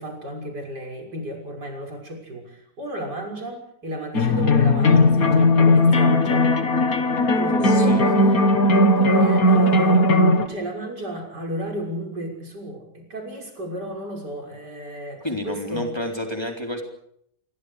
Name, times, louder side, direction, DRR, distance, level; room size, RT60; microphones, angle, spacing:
voice 1, 0.0-6.5 7.0-7.1 7.4-8.5 8.8-15.9, equal, 70° right, 2 dB, 6.9 m, -33 dB
sound 1, 4.1-10.5, left 1 dB, 55° left, 2.6 m, -17 dB
voice 2, 7.6-8.0 15.2-16.8, left 1 dB, 15° left, 3 dB, 3.9 m, -30 dB
27.5 x 23.5 x 5.0 m, 0.70 s
omnidirectional pair, 1.8 m